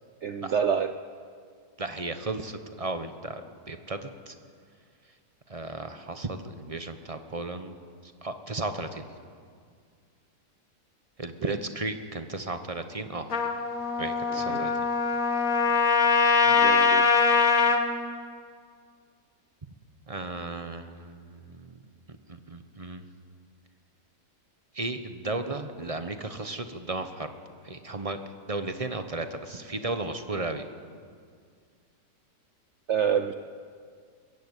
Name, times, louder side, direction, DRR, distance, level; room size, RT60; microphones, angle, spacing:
voice 1, 0.2-0.9 11.4-11.5 14.3-14.7 16.5-17.1 32.9-33.3, right 7 dB, 60° right, 11 dB, 0.8 m, -28 dB
voice 2, 1.8-4.4 5.5-7.7 8.0-9.1 11.2-13.3 14.0-14.7 20.1-21.7 22.3-23.1 24.7-27.3 27.6-28.2 28.5-30.7, right 2 dB, 25° right, 8 dB, 0.9 m, -34 dB
Trumpet, 13.3-17.8, left 5 dB, 55° left, 1.9 m, -22 dB
21.5 x 16.0 x 8.2 m, 2.1 s
omnidirectional pair, 1.8 m